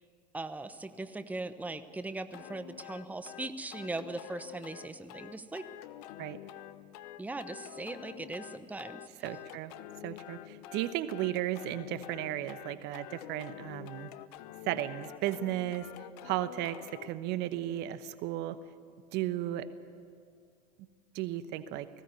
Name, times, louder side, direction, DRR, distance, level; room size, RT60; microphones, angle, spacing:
voice 1, 0.3-5.6 7.2-9.0, right 2 dB, 5° right, 10 dB, 1.0 m, -39 dB
sound 1, 2.3-17.1, left 13 dB, 65° left, 0.9 m, -48 dB
voice 2, 9.2-9.7 10.0-14.1 14.7-15.9 16.2-18.6 19.1-19.7 21.1-21.9, right 13 dB, 55° right, 13 dB, 1.0 m, -34 dB
20.0 x 16.0 x 9.7 m, 2.2 s
hypercardioid pair, 85°, 21 cm